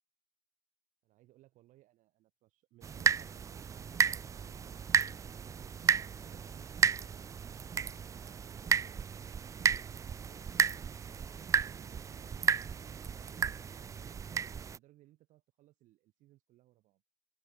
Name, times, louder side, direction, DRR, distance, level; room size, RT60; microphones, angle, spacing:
voice 1, 1.0-5.2 5.6-9.0 9.8-11.0 11.4-14.2 14.7-17.0, right 16 dB, 70° right, 7.0 m, -64 dB
sound 1, 2.8-14.8, right 7 dB, 25° right, 0.3 m, -33 dB
open air
cardioid pair, 130°, 13 cm